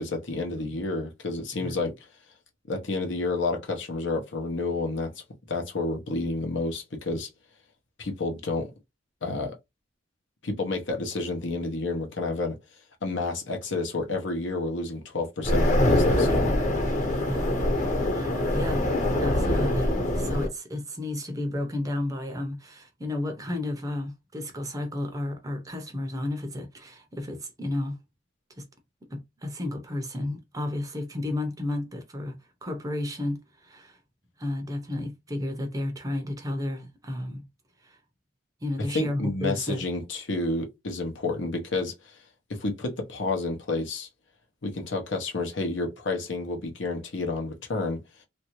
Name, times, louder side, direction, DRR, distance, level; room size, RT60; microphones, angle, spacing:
voice 1, 0.0-1.9 2.7-5.1 5.5-7.3 8.0-8.7 9.2-9.6 10.4-12.6 13.0-16.5 38.9-42.2 42.5-44.1 44.6-48.0, left 3 dB, 70° left, 0.8 m, -30 dB
sound 1, 15.4-20.5, left 1 dB, 40° left, 1.1 m, -24 dB
voice 2, 18.1-18.9 19.2-28.0 28.6-28.7 29.1-34.0 34.4-37.4 37.8-38.0 38.6-39.8, left 1 dB, 20° right, 0.5 m, -32 dB
3.2 x 2.6 x 2.9 m
head